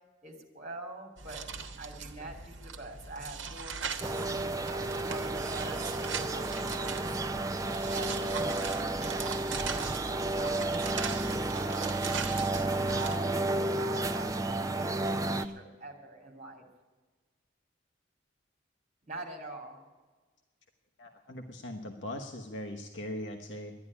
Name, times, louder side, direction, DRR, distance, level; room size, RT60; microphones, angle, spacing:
voice 1, 0.2-1.4 1.8-7.1 7.8-16.6 19.0-19.8, right 2 dB, 35° right, 3 dB, 2.7 m, -45 dB
sound 1, 1.2-13.2, right 5 dB, 80° right, 1.2 m, -40 dB
Propeller aircraft afternoon fly past, 4.0-15.5, right 2 dB, 15° right, 0.5 m, -32 dB
voice 2, 21.0-23.7, left 1 dB, 75° left, 3 dB, 1.1 m, -40 dB
12.0 x 10.0 x 9.6 m, 1.3 s
head